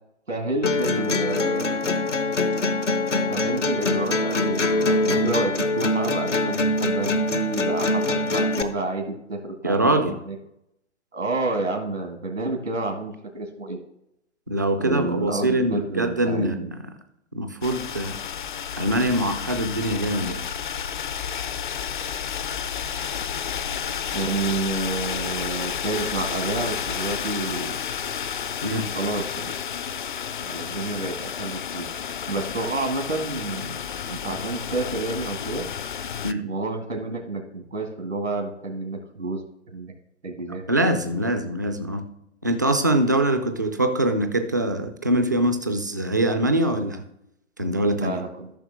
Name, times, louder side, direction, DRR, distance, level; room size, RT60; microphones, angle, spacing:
voice 1, 0.3-1.8 3.3-10.4 11.1-13.8 14.7-16.7 24.1-27.8 28.9-29.6 30.4-31.9 32.3-33.8 34.1-35.7 36.4-39.4 39.7-39.9 40.2-40.6 47.9-48.5, right 2 dB, 85° right, 2 dB, 2.0 m, -29 dB
sound 1, 0.6-8.6, left 2 dB, 80° left, 1.1 m, -23 dB
voice 2, 9.6-10.2 14.5-16.8 17.3-18.2 18.8-20.4 28.6-28.9 36.2-36.4 40.5-42.0 42.4-47.0 47.6-48.2, right 1 dB, 15° right, 8 dB, 0.3 m, -23 dB
sound 2, 17.6-36.3, left 8 dB, 45° left, 0.5 m, -31 dB
13.5 x 6.1 x 3.5 m, 0.80 s
figure-of-eight pair, 125°, 36 cm